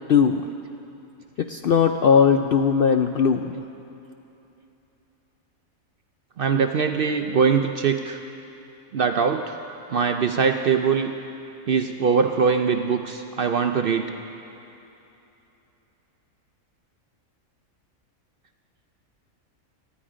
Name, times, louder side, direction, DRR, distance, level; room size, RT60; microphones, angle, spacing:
voice 1, 0.1-0.4 1.4-3.5, left 6 dB, 65° left, 6 dB, 0.5 m, -19 dB
voice 2, 6.4-8.2 8.9-9.5 9.9-11.1 11.7-14.1, right 6 dB, 60° right, 6 dB, 0.6 m, -22 dB
18.5 x 14.0 x 5.0 m, 2.9 s
omnidirectional pair, 1.4 m